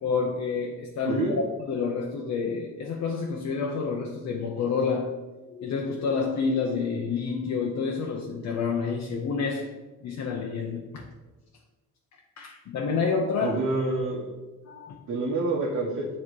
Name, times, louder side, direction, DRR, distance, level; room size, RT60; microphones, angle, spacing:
voice 1, 0.0-5.2 5.5-9.7 10.0-11.0 12.4-13.6 14.7-15.0, left 5 dB, 65° left, 1 dB, 0.8 m, -29 dB
voice 2, 13.4-14.3 15.1-16.1, right 3 dB, 60° right, -4 dB, 1.2 m, -27 dB
7.4 x 3.1 x 4.7 m, 1.2 s
cardioid pair, 90°, 30 cm